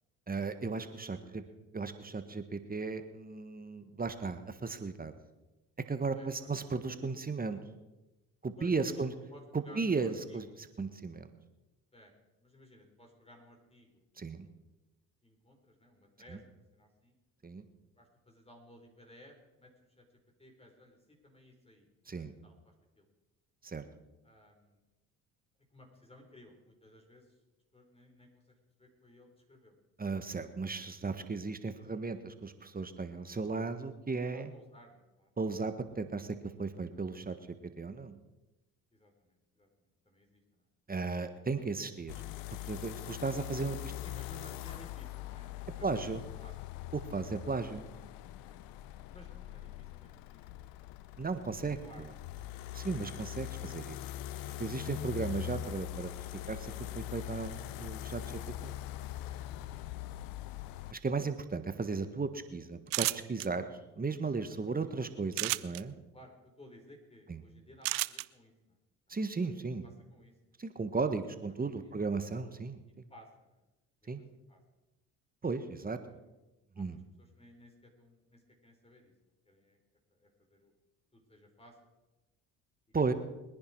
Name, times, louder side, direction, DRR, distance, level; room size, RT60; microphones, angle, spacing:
voice 1, 0.3-1.2 1.7-5.1 5.9-7.6 8.4-9.1 9.5-10.4 10.8-11.3 14.2-14.5 16.3-16.4 17.4-17.6 22.1-22.3 23.6-23.8 30.0-34.5 35.4-37.3 37.8-38.2 40.9-42.1 42.7-43.9 45.8-46.2 46.9-47.8 51.2-51.8 52.7-54.0 54.6-56.1 56.5-58.2 58.6-58.8 60.9-63.6 64.0-65.9 67.3-67.4 69.1-69.8 70.6-73.1 74.1-74.2 75.4-76.0 76.8-77.0 82.9-83.1, right 4 dB, 25° right, 9 dB, 1.5 m, -35 dB
voice 2, 1.1-1.6 6.1-6.5 8.6-10.4 11.9-12.1 12.4-14.0 15.2-17.1 18.0-19.7 20.0-20.1 20.4-21.9 22.1-23.1 24.2-24.8 25.7-27.4 27.7-29.7 33.1-33.3 34.3-35.3 38.9-40.7 44.0-46.8 48.4-48.6 49.1-50.6 51.7-52.1 64.5-64.9 66.1-68.8 69.1-69.2 69.4-69.5 69.8-70.5 71.7-71.9 73.1-73.6 74.0-74.6 76.1-76.3 76.7-79.1 79.4-79.8 80.1-80.7 81.1-81.8, left 1 dB, 15° left, 1 dB, 4.9 m, -58 dB
sound 1, 42.1-60.9, left 13 dB, 75° left, 0.8 m, -42 dB
sound 2, 62.9-63.5 65.3-65.8 67.8-68.2, right 21 dB, 70° right, 0.6 m, -31 dB
22.0 x 10.5 x 4.7 m, 1.0 s
hypercardioid pair, 60°, 35 cm